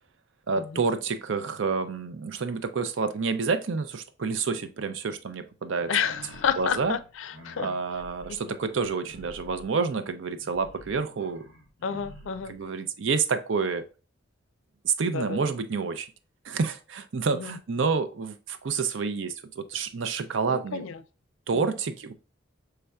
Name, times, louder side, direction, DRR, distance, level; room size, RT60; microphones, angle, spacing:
voice 1, 0.5-5.9 6.6-6.9 7.6-11.4 12.5-13.8 14.8-16.1 16.4-20.8 21.5-22.1, right 5 dB, 75° right, 0.5 m, -28 dB
sound 1, 5.8-12.6, equal, 90° right, 1.4 m, -49 dB
voice 2, 5.9-7.7 11.8-12.5 15.1-15.4 17.3-17.5 20.5-21.0 21.5-21.7, left 7 dB, 80° left, 0.4 m, -30 dB
6.5 x 3.4 x 2.3 m
head